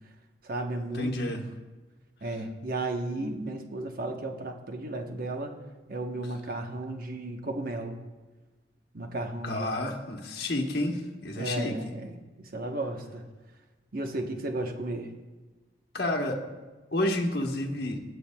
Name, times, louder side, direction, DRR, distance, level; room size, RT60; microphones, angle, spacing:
voice 1, 0.4-1.1 2.2-5.5 5.9-8.0 8.9-9.8 11.4-13.2 13.9-15.1, right 2 dB, 55° right, 4 dB, 1.0 m, -34 dB
voice 2, 0.9-1.4 9.4-11.8 15.9-16.4 16.9-18.0, left 1 dB, 60° left, 2 dB, 1.1 m, -30 dB
19.0 x 7.8 x 2.3 m, 1.2 s
head